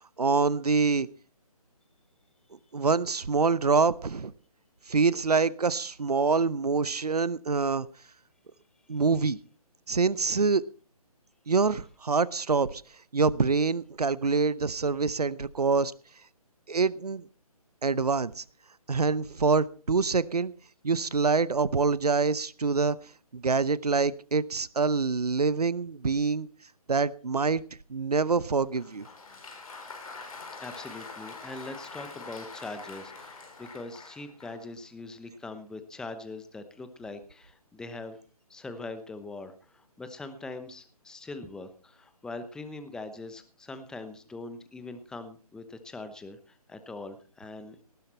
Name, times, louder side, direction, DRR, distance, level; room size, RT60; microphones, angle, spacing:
voice 1, 0.2-1.1 2.7-4.3 4.9-7.9 8.9-9.4 9.9-10.6 11.5-12.8 13.1-15.9 16.7-17.2 17.8-18.4 18.9-20.5 20.8-23.0 23.3-26.5 26.9-27.6 27.9-29.1, right 4 dB, 85° right, 20 dB, 0.8 m, -25 dB
Applause, 28.5-34.7, left 4 dB, 65° left, 4.9 m, -44 dB
voice 2, 30.6-38.2 38.5-47.8, left 3 dB, 5° left, 10 dB, 0.9 m, -42 dB
18.5 x 10.5 x 4.3 m, 0.37 s
figure-of-eight pair, 145°, 20 cm